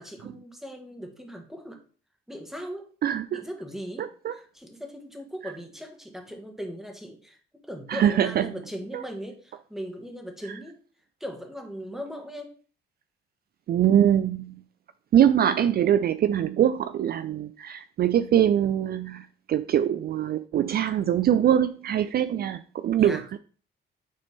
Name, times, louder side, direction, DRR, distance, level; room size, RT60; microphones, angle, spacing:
voice 1, 0.0-1.8 2.3-2.9 3.3-7.4 7.7-10.8 11.2-12.5 23.0-23.3, equal, ahead, 3 dB, 1.8 m, -39 dB
voice 2, 3.0-3.4 4.0-4.3 5.4-5.5 7.9-8.5 8.9-9.0 13.7-14.6 15.1-23.2, right 10 dB, 50° right, 13 dB, 0.4 m, -23 dB
9.6 x 4.0 x 3.6 m, 0.40 s
cardioid pair, 90°, 20 cm